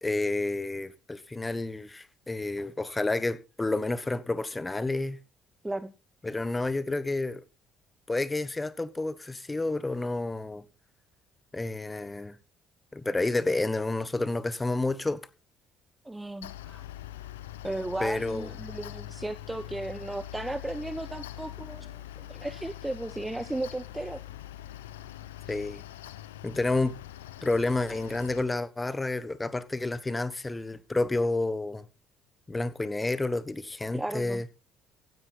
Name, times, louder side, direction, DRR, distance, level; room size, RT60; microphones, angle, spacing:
voice 1, 0.0-5.2 6.2-7.4 8.1-10.6 11.5-12.4 12.9-15.2 18.0-18.5 25.5-25.8 26.4-27.0 27.4-31.8 32.5-34.4, left 2 dB, 20° left, 1.2 m, -30 dB
voice 2, 16.0-16.8 17.6-24.2 33.9-34.4, right 2 dB, 10° right, 0.8 m, -35 dB
Mechanical fan, 16.4-28.4, left 13 dB, 80° left, 0.7 m, -43 dB
16.0 x 10.5 x 4.1 m
figure-of-eight pair, 50°, 0 cm